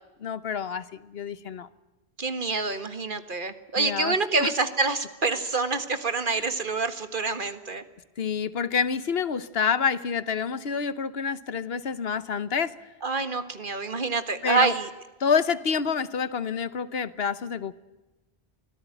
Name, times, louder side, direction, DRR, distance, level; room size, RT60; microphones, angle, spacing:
voice 1, 0.2-1.7 3.8-4.5 6.3-6.5 8.2-12.7 14.4-14.7 15.2-17.7, left 6 dB, 75° left, 15 dB, 1.2 m, -28 dB
voice 2, 2.2-7.8 13.0-14.9, right 4 dB, 55° right, 10 dB, 1.8 m, -27 dB
24.5 x 17.0 x 9.0 m, 1.1 s
omnidirectional pair, 1.0 m